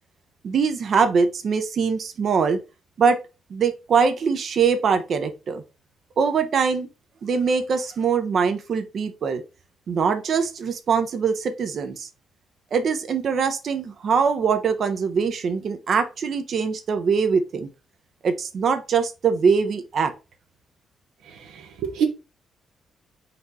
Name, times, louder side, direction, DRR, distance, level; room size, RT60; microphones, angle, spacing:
voice 1, 0.4-2.6 3.0-3.2 3.5-5.6 6.2-6.9 7.2-9.4 9.9-12.1 12.7-17.7 18.2-20.1, right 5 dB, 60° right, 0.8 m, -22 dB
voice 2, 21.3-22.1, right 7 dB, 85° right, 1.0 m, -27 dB
4.2 x 2.7 x 4.6 m
cardioid pair, 75°, 0 cm